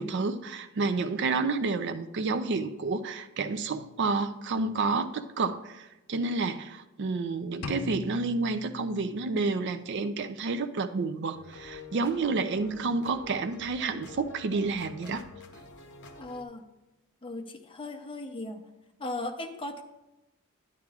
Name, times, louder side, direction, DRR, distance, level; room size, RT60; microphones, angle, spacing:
voice 1, 0.0-15.3, right 3 dB, 55° right, 11 dB, 0.4 m, -30 dB
sound 1, 7.6-9.6, left 4 dB, 85° left, 0.6 m, -40 dB
sound 2, 11.3-16.4, left 4 dB, 55° left, 0.8 m, -47 dB
voice 2, 16.2-16.7 17.2-18.6 19.0-19.8, left 2 dB, 25° left, 5 dB, 0.7 m, -37 dB
11.0 x 9.8 x 2.4 m, 0.97 s
head